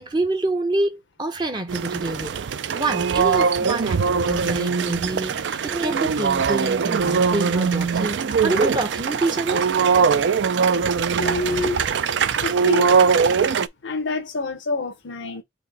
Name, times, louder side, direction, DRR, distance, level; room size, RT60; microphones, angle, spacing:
voice 1, 0.0-2.4 2.7-9.6, right 2 dB, 25° right, 0.5 m, -26 dB
sound 1, 1.7-13.7, right 6 dB, 80° right, 0.4 m, -21 dB
voice 2, 11.2-12.0 12.4-12.9 13.8-15.4, left 3 dB, 90° left, 0.8 m, -27 dB
4.3 x 3.0 x 4.0 m
head